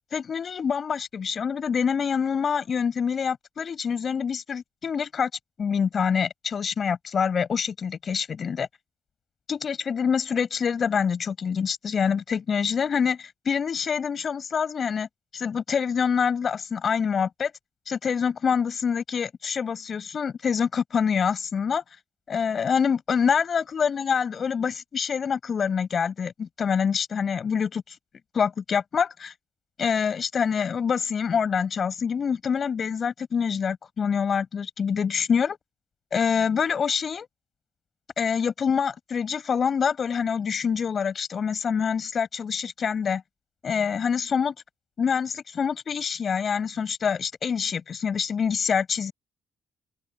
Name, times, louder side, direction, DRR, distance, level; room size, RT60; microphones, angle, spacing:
voice 1, 0.1-5.3 5.6-8.7 9.5-15.1 15.3-17.5 17.9-21.8 22.3-28.0 28.3-29.3 29.8-35.6 36.1-37.3 38.2-43.2 43.6-44.5 45.0-49.1, left 6 dB, 50° left, 5.3 m, -26 dB
open air
cardioid pair, 90°, 0 cm